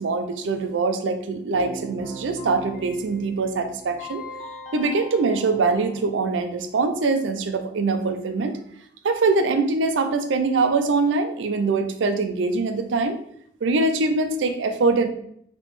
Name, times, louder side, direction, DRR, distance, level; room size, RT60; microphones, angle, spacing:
voice 1, 0.0-4.2 4.7-8.6 9.0-13.2 13.6-15.1, right 3 dB, 85° right, 8 dB, 0.4 m, -23 dB
Keyboard (musical), 1.5-6.5, equal, 40° left, 0.8 m, -39 dB
3.3 x 3.0 x 3.1 m, 0.70 s
head